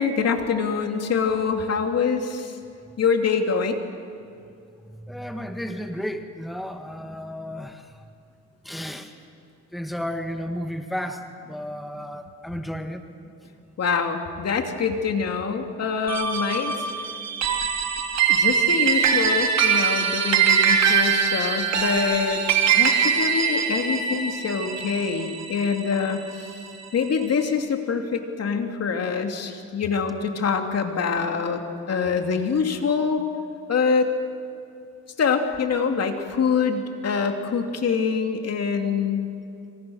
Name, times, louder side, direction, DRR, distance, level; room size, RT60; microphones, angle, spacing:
voice 1, 0.0-2.5 3.0-3.8 13.8-16.7 18.3-22.4 22.7-26.5 26.9-31.6 31.9-33.2 33.7-34.1 35.2-39.3, left 5 dB, 55° left, 4 dB, 2.8 m, -25 dB
voice 2, 5.0-7.9 8.6-9.1 9.7-13.0, equal, ahead, 5 dB, 1.7 m, -33 dB
sound 1, 16.1-26.7, right 7 dB, 60° right, 3.2 m, -22 dB
26.5 x 26.5 x 6.5 m, 2.5 s
cardioid pair, 90°, 30 cm